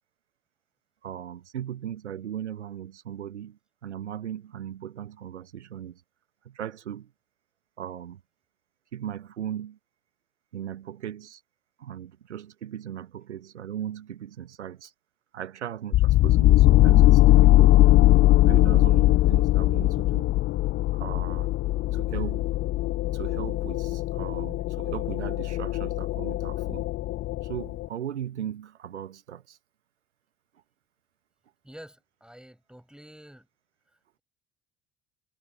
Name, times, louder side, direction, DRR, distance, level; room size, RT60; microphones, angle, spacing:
voice 1, 1.0-6.0 6.4-7.1 7.8-8.2 8.9-9.8 10.5-11.4 11.8-14.9 15.3-20.3 20.9-21.5 21.9-22.6 23.1-26.9 27.4-29.6, right 10 dB, 80° right, 0.9 m, -38 dB
sound 1, 15.9-27.9, left 16 dB, 35° left, 0.4 m, -21 dB
voice 2, 31.6-33.5 33.9-34.2, equal, ahead, 6.1 m, -49 dB
figure-of-eight pair, 55°, 34 cm